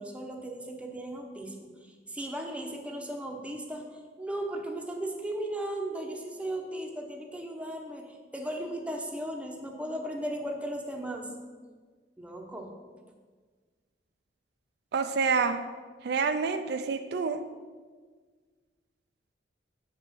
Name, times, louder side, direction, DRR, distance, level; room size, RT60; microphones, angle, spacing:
voice 1, 0.0-1.7 2.1-11.3 12.2-12.7, right 1 dB, 5° right, 2 dB, 0.9 m, -36 dB
voice 2, 14.9-15.6 16.0-17.4, right 5 dB, 65° right, 8 dB, 0.4 m, -27 dB
6.2 x 5.4 x 7.0 m, 1.5 s
head